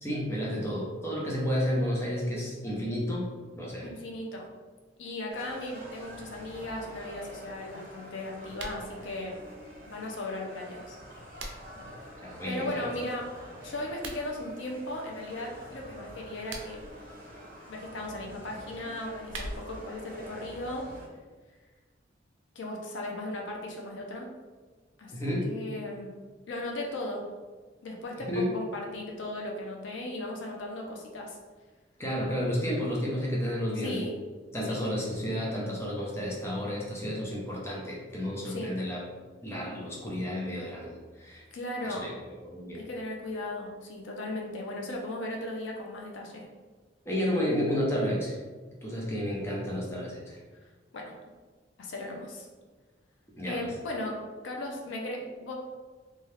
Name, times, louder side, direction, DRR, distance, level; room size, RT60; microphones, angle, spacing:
voice 1, 0.0-3.3 3.6-3.9 12.2-12.9 25.1-25.5 28.3-28.5 32.0-34.0 34.5-39.0 39.4-41.4 41.8-42.1 42.4-42.8 47.1-48.4 48.8-50.4 53.4-53.6, equal, 15° left, -4 dB, 0.6 m, -31 dB
voice 2, 3.8-4.5 5.0-9.3 9.9-11.0 12.5-13.3 13.6-16.8 17.7-20.9 22.6-24.3 25.0-25.1 25.5-26.2 26.5-27.2 27.8-31.4 33.8-34.2 34.7-34.8 37.0-37.1 38.4-38.7 41.5-42.1 42.7-46.5 50.9-51.1 51.8-52.5 53.4-54.2 54.4-55.5, left 1 dB, 80° left, 0 dB, 0.5 m, -37 dB
sound 1, 5.3-21.1, equal, 50° right, 0.8 m, -47 dB
sound 2, 8.5-8.8 10.9-11.8 13.9-14.2 16.3-16.9 18.9-19.9, right 2 dB, 85° right, 0.5 m, -42 dB
2.7 x 2.3 x 3.2 m, 1.4 s
head